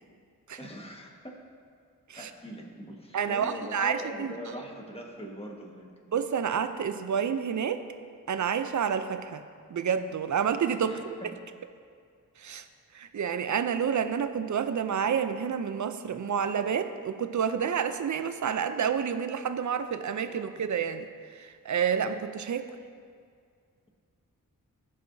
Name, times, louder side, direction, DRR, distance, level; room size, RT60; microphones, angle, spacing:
voice 1, 0.6-1.4 2.2-5.9 10.8-11.3 20.3-20.5, equal, 15° left, -1 dB, 1.5 m, -42 dB
voice 2, 3.1-4.3 6.1-7.8 8.3-9.4 9.7-11.1 12.4-12.6 12.9-21.1 21.4-22.6, right 7 dB, 55° right, 10 dB, 0.5 m, -29 dB
14.0 x 4.8 x 2.7 m, 2.1 s
cardioid pair, 40°, 35 cm